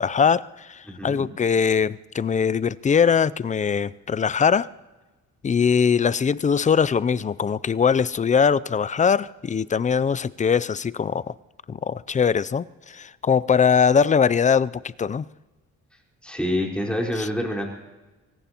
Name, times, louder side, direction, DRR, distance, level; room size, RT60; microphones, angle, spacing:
voice 1, 0.0-4.7 5.4-11.3 11.7-14.7 15.0-15.2 17.2-17.3, left 6 dB, 25° left, 0.4 m, -21 dB
voice 2, 0.9-1.3 16.2-17.7, left 1 dB, 5° left, 4.5 m, -27 dB
25.0 x 18.0 x 3.0 m
cardioid pair, 90°, 30 cm